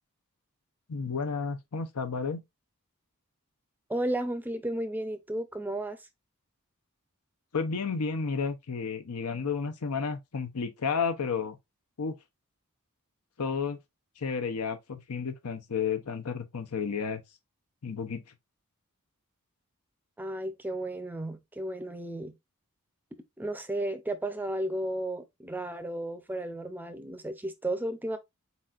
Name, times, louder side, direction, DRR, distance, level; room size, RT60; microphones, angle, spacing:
voice 1, 0.9-2.4 7.5-11.6 12.0-12.2 13.4-13.8 14.2-17.2 17.8-18.2, left 5 dB, 85° left, 0.7 m, -32 dB
voice 2, 3.9-6.0 20.2-22.3 23.4-28.2, right 1 dB, 10° right, 0.5 m, -33 dB
4.3 x 4.1 x 2.4 m
head